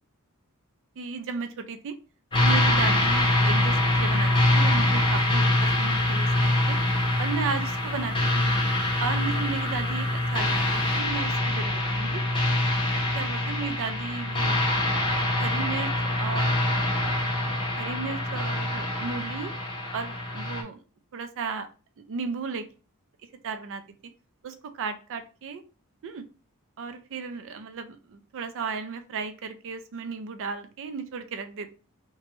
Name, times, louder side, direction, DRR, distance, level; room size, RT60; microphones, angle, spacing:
voice 1, 1.0-1.9 2.4-6.8 7.2-8.6 9.0-12.2 12.9-14.6 15.1-15.9 16.2-17.2 17.8-19.5 19.9-20.8 21.1-21.7 22.1-22.7 23.4-23.8 24.4-25.6 26.0-26.2 26.8-31.7, right 5 dB, 60° right, 9 dB, 0.4 m, -35 dB
sound 1, 2.3-20.6, left 1 dB, 20° left, 0.6 m, -24 dB
2.9 x 2.2 x 2.9 m, 0.35 s
head